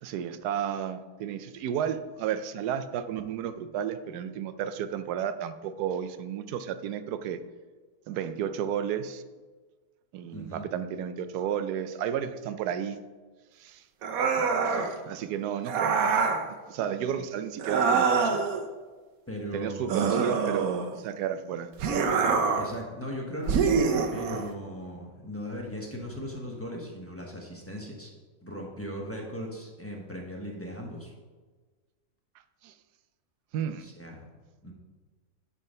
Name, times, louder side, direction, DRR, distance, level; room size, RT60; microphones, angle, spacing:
voice 1, 0.0-7.4 8.1-9.2 10.1-13.0 13.6-13.8 14.4-16.0 16.7-18.4 19.5-21.7 32.6-32.7 33.5-33.9, right 9 dB, 90° right, 11 dB, 1.1 m, -32 dB
voice 2, 10.3-10.6 19.3-20.3 22.6-28.1 28.4-31.1 33.8-34.1 34.6-34.7, equal, 10° left, -2 dB, 0.9 m, -38 dB
sound 1, 14.0-14.9 15.7-16.4 17.6-18.6 19.9-21.0 21.8-22.7 23.5-24.5, right 5 dB, 70° right, 1.1 m, -25 dB
9.8 x 3.7 x 5.4 m, 1.4 s
omnidirectional pair, 1.6 m